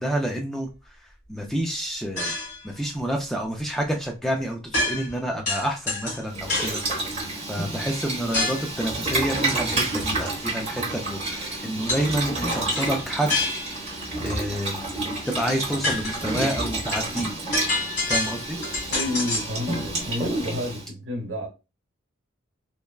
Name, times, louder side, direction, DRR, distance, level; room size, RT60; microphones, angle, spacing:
voice 1, 0.0-2.3 2.6-6.8 7.5-14.8 15.3-17.3 18.1-18.6, right 1 dB, ahead, 0.3 m, -29 dB
sound 1, 2.2-2.7 4.7-5.2 5.5-6.8 8.3-8.7 11.9-12.1 12.5-13.9 15.2-15.3 15.7-19.6, left 2 dB, 40° left, 1.6 m, -28 dB
Boiling, 6.3-20.8, right 2 dB, 30° right, 1.0 m, -29 dB
voice 2, 18.9-21.5, left 1 dB, 65° right, 1.2 m, -30 dB
3.3 x 2.1 x 2.2 m
head